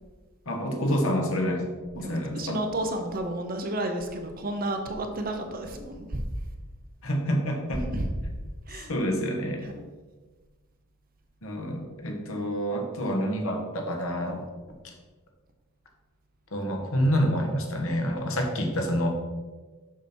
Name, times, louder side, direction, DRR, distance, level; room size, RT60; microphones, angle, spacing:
voice 1, 0.5-1.6 1.9-2.6 7.0-7.8 8.9-9.6 11.4-14.4 16.5-19.1, equal, 65° left, 2 dB, 1.4 m, -27 dB
voice 2, 1.9-6.2 7.7-8.1 8.7-8.9 9.6-9.8 14.3-14.4, right 1 dB, 40° right, 5 dB, 0.8 m, -31 dB
7.1 x 5.9 x 4.4 m, 1.3 s
head